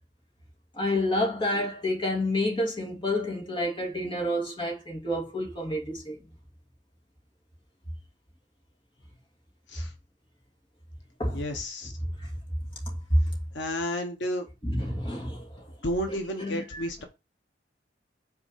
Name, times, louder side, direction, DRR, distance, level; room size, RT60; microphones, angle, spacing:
voice 1, 0.7-6.2 11.2-11.4 14.6-15.5 16.4-16.8, left 1 dB, 25° left, 2.4 m, -29 dB
voice 2, 11.3-11.9 13.5-14.5 15.8-17.0, equal, 80° left, 1.1 m, -31 dB
5.9 x 4.3 x 5.6 m
head